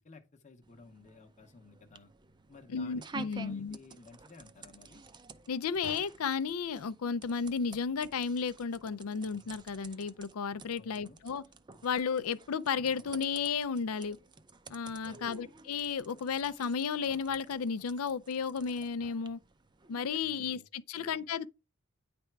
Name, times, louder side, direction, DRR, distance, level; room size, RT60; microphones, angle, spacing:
voice 1, 0.0-2.1 2.5-5.0 10.8-11.2 15.1-15.6 20.2-20.7 20.9-21.5, left 3 dB, 35° left, 0.8 m, -55 dB
sound 1, 0.6-20.2, right 4 dB, 20° right, 0.5 m, -51 dB
voice 2, 2.7-3.8 5.5-11.4 11.8-14.2 14.7-19.4 19.9-21.5, left 6 dB, 75° left, 0.5 m, -33 dB
9.8 x 3.4 x 4.5 m
head